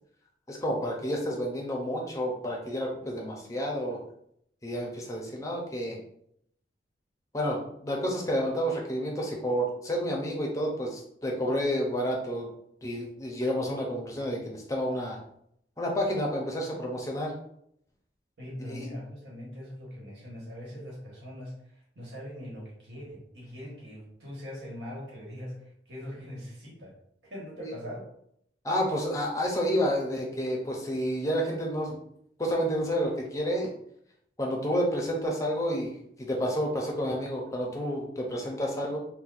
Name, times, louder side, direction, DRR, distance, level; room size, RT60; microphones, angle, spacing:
voice 1, 0.5-4.0 4.6-6.0 7.3-12.5 12.8-15.2 15.8-17.3 18.6-18.9 27.6-27.7 28.6-32.0 32.4-33.7 34.4-39.0, equal, 20° left, -1 dB, 0.5 m, -30 dB
voice 2, 18.4-21.6 21.9-26.9 27.2-28.1, equal, 85° right, -4 dB, 1.3 m, -41 dB
4.1 x 2.1 x 2.4 m, 0.72 s
head